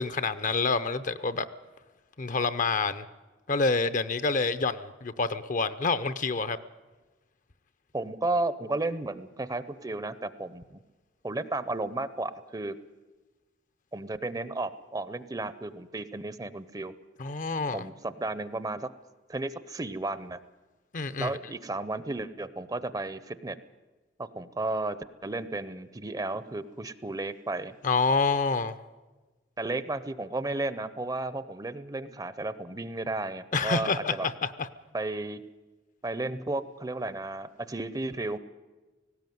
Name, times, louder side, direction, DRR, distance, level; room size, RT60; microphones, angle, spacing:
voice 1, 0.0-1.5 2.2-3.0 3.5-6.6 17.2-17.8 20.9-21.3 27.8-28.7 33.5-34.7, left 4 dB, 45° left, 13 dB, 0.7 m, -27 dB
voice 2, 7.9-10.8 11.2-12.7 13.9-16.9 17.7-18.9 19.3-20.4 21.2-23.6 24.2-27.7 29.6-34.3 34.9-35.4 36.0-38.4, right 2 dB, 20° right, 14 dB, 0.6 m, -33 dB
18.5 x 16.5 x 9.3 m, 1.2 s
head